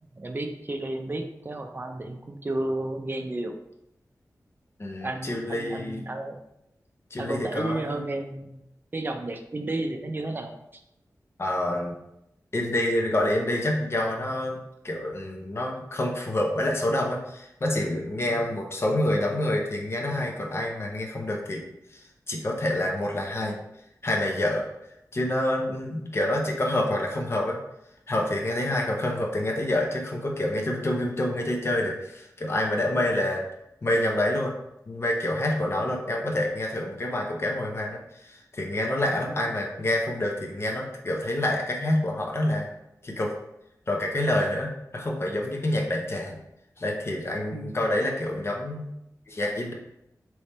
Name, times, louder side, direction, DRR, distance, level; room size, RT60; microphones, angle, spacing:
voice 1, 0.0-3.6 5.0-6.4 7.2-8.6 8.9-10.8 18.3-18.5 28.7-28.9 33.0-33.2 39.2-39.5 47.5-47.8, right 2 dB, 30° right, 4 dB, 0.5 m, -33 dB
voice 2, 4.8-6.1 7.1-8.0 11.4-11.9 12.5-14.6 14.8-21.6 21.9-23.6 24.0-24.7 25.1-27.6 28.1-33.5 33.8-34.5 34.9-42.7 43.0-43.3 43.9-46.4 46.8-48.9 49.3-49.7, left 1 dB, 40° left, 0 dB, 0.7 m, -27 dB
3.4 x 3.1 x 4.1 m, 0.82 s
wide cardioid pair, 105°, 6 cm